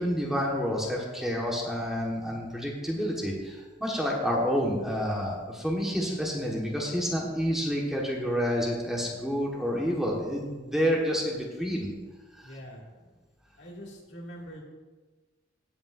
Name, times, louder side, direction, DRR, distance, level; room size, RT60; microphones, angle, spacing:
voice 1, 0.0-11.9 12.4-12.6, equal, ahead, -3 dB, 1.3 m, -29 dB
voice 2, 12.4-12.8 13.6-14.6, equal, 60° left, -2 dB, 2.2 m, -43 dB
17.0 x 8.5 x 2.5 m, 1.3 s
head